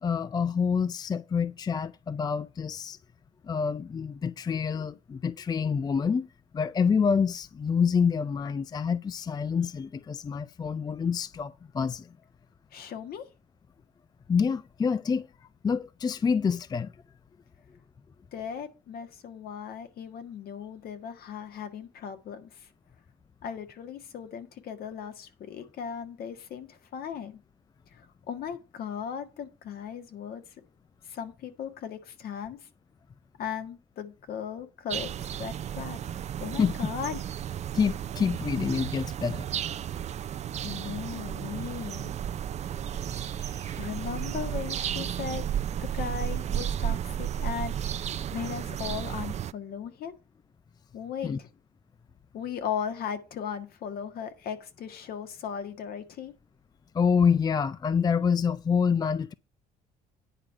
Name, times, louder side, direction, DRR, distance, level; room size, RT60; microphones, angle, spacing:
voice 1, 0.0-3.0 3.4-6.3 6.5-12.1 14.3-15.3 15.6-16.9 36.6-36.7 37.7-39.5 43.1-43.8 51.2-51.4 56.9-59.3, left 6 dB, 25° left, 0.4 m, -27 dB
voice 2, 12.7-13.3 18.3-22.7 23.4-27.4 27.9-30.4 31.1-32.6 33.4-35.1 35.4-36.0 36.4-37.2 40.6-42.1 43.8-45.5 45.8-47.7 48.3-50.1 50.9-51.5 52.3-56.3, left 8 dB, 65° left, 1.7 m, -37 dB
sound 1, 34.9-49.5, right 10 dB, 40° right, 0.5 m, -33 dB
9.9 x 4.7 x 7.5 m
cardioid pair, 110°, 17 cm